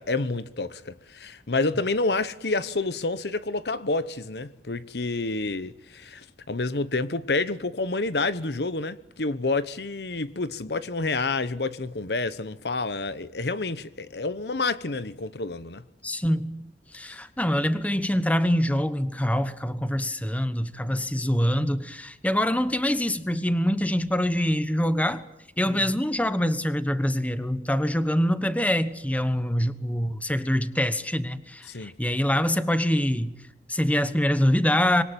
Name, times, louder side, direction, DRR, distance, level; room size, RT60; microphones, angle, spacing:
voice 1, 0.0-15.8 25.7-25.9 31.7-31.9, left 3 dB, 65° left, 1.0 m, -29 dB
voice 2, 16.0-25.3 25.6-33.3 33.7-35.0, equal, 10° left, 1.2 m, -25 dB
26.0 x 22.5 x 9.1 m
head